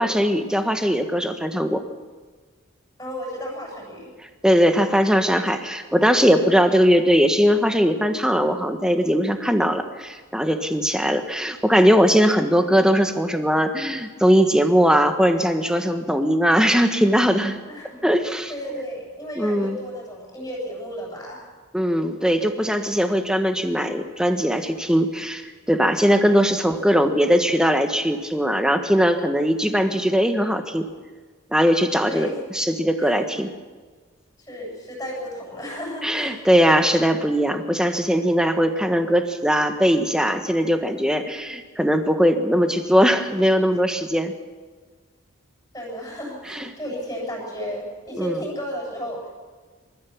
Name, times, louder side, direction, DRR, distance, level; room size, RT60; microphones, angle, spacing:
voice 1, 0.0-1.8 4.4-17.6 18.0-18.8 19.3-19.8 21.7-30.9 31.5-33.5 36.0-44.3 46.5-46.7 48.2-48.4, equal, 5° right, 6 dB, 1.3 m, -20 dB
voice 2, 3.0-4.1 17.7-18.0 18.5-21.4 26.8-27.0 32.1-32.5 33.0-33.2 34.4-36.4 45.7-49.3, equal, 15° left, -4 dB, 7.1 m, -33 dB
26.5 x 14.0 x 7.2 m, 1.4 s
head